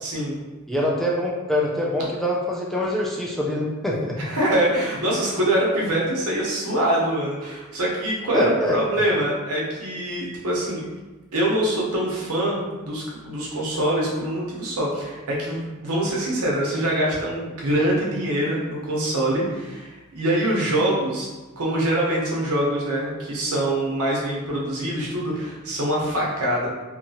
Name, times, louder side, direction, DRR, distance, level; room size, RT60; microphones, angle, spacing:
voice 1, 0.0-0.4 4.2-10.8 11.3-21.3 21.6-26.7, right 1 dB, 80° right, -4 dB, 0.8 m, -24 dB
voice 2, 0.7-4.2 8.3-8.8, left 1 dB, ahead, -4 dB, 0.3 m, -24 dB
2.9 x 2.3 x 2.7 m, 1.2 s
head